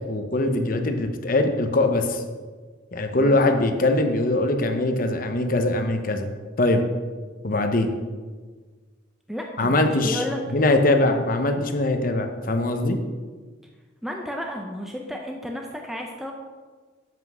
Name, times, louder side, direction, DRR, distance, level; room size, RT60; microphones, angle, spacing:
voice 1, 0.1-2.2 2.9-6.3 6.6-6.8 7.4-7.9 9.6-10.2 10.5-13.0, left 2 dB, 45° left, 6 dB, 0.9 m, -22 dB
voice 2, 9.3-10.4 14.0-16.3, left 1 dB, ahead, 1 dB, 0.6 m, -32 dB
7.6 x 5.8 x 6.1 m, 1.4 s
head